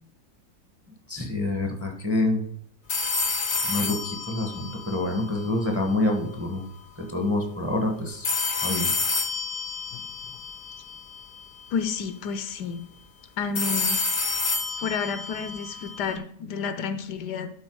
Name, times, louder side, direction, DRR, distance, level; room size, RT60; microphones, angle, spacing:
voice 1, 1.1-2.4 3.7-6.6 7.0-8.3 8.6-8.9, left 2 dB, 10° right, 3 dB, 1.0 m, -27 dB
sound 1, 2.9-5.9 8.2-11.4 13.5-16.1, left 4 dB, 40° left, 0.8 m, -29 dB
voice 2, 11.7-12.9 13.4-14.1 14.8-17.5, left 5 dB, 70° left, 10 dB, 1.2 m, -30 dB
12.0 x 4.4 x 4.6 m, 0.68 s
omnidirectional pair, 1.9 m